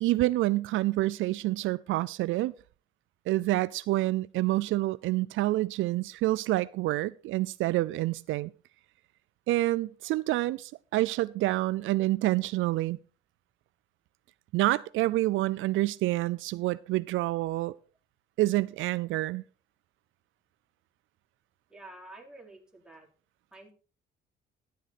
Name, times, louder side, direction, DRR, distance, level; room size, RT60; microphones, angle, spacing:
voice 1, 0.0-2.5 3.3-8.5 9.5-13.0 14.5-17.7 18.4-19.4, right 17 dB, 85° right, 0.4 m, -27 dB
voice 2, 21.7-23.1 23.5-23.7, right 2 dB, 5° right, 3.4 m, -49 dB
11.0 x 9.3 x 4.1 m
cardioid pair, 90°, 20 cm